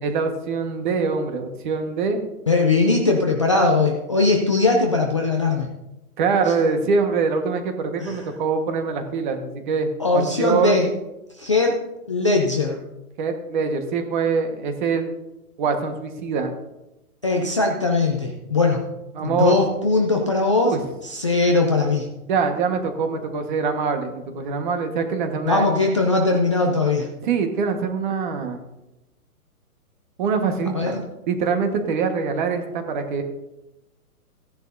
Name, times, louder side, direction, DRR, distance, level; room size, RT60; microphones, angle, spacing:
voice 1, 0.0-2.2 6.2-10.8 13.2-15.1 15.6-16.5 19.1-19.5 20.6-20.8 22.3-25.7 27.2-28.6 30.2-31.0 31.3-33.2, right 5 dB, 30° right, 6 dB, 1.4 m, -24 dB
voice 2, 2.5-5.7 6.5-6.6 8.0-8.3 10.0-10.9 11.4-11.8 12.1-12.8 17.2-18.9 19.2-20.8 21.0-22.1 25.5-27.1 30.7-31.0, left 3 dB, 20° left, 1 dB, 0.4 m, -20 dB
16.0 x 10.5 x 2.6 m, 0.95 s
hypercardioid pair, 160°, 45 cm